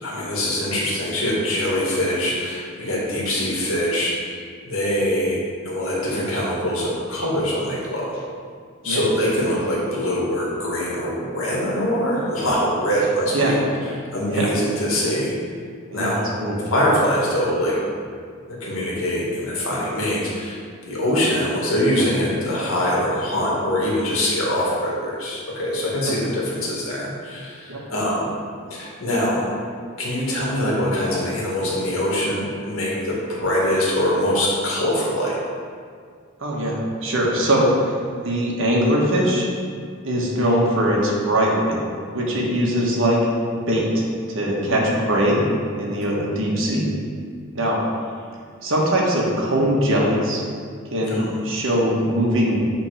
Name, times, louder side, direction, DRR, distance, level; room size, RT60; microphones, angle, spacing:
voice 1, 0.0-4.4 4.6-5.4 5.6-8.2 8.8-13.5 14.1-15.3 15.9-16.2 16.7-17.8 18.5-28.3 28.7-29.5 30.0-35.4 44.7-45.0 51.1-51.3, equal, 70° left, -5 dB, 2.0 m, -23 dB
voice 2, 36.4-37.9 38.2-39.5 40.0-41.8 42.1-43.2 43.7-45.4 45.8-46.9 47.5-47.8 48.6-50.4 50.9-52.6, equal, 65° right, -3 dB, 1.5 m, -21 dB
8.9 x 3.8 x 4.9 m, 2.1 s
head